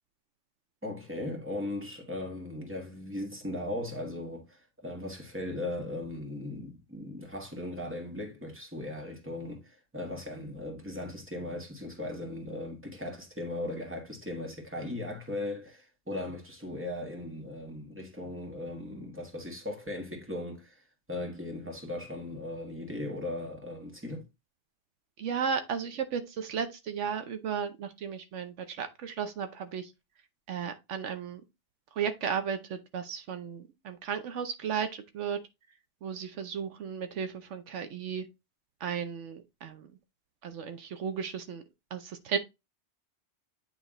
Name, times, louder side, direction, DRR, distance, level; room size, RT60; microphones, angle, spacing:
voice 1, 0.8-24.2, left 1 dB, 10° right, 1.6 m, -38 dB
voice 2, 25.2-29.9 30.5-31.4 32.0-35.4 36.0-38.3 38.8-39.9 40.4-41.6 41.9-42.4, right 7 dB, 80° right, 1.1 m, -34 dB
8.8 x 3.4 x 3.8 m
omnidirectional pair, 1.2 m